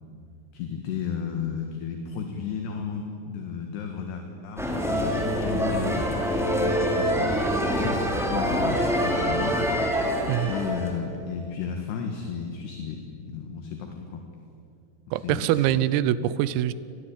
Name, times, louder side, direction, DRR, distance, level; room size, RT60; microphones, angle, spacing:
voice 1, 0.5-6.1 6.6-9.7 10.5-14.2 15.1-15.7, left 6 dB, 65° left, 4 dB, 3.4 m, -33 dB
sound 1, 4.6-11.0, equal, ahead, 2.7 m, -25 dB
voice 2, 15.1-16.7, right 12 dB, 90° right, 16 dB, 3.6 m, -24 dB
28.0 x 21.0 x 8.7 m, 2.5 s
omnidirectional pair, 5.9 m